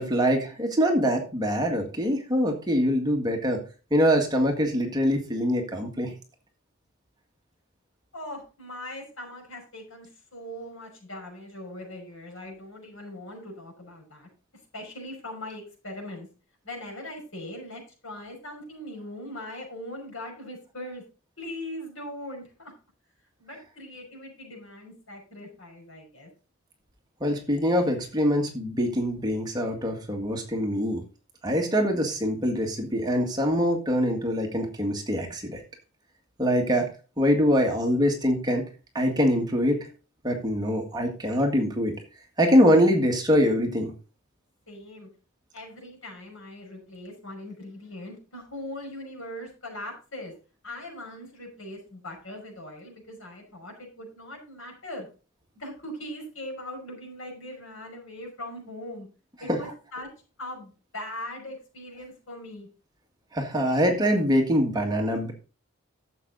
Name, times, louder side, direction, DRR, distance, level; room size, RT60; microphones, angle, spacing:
voice 1, 0.0-3.6 3.9-6.1 27.2-31.0 31.4-35.6 36.4-36.9 37.2-38.6 38.9-39.9 40.2-41.9 42.4-43.9 59.5-59.6 63.3-65.3, equal, 20° right, 2 dB, 1.8 m, -24 dB
voice 2, 8.1-14.3 14.7-16.3 16.6-21.0 21.4-22.7 23.4-26.3 44.7-45.1 45.5-50.3 50.6-55.1 55.6-59.1 59.4-60.1 60.4-62.7, left 1 dB, 80° left, 1 dB, 5.7 m, -40 dB
11.5 x 7.6 x 4.0 m, 0.34 s
head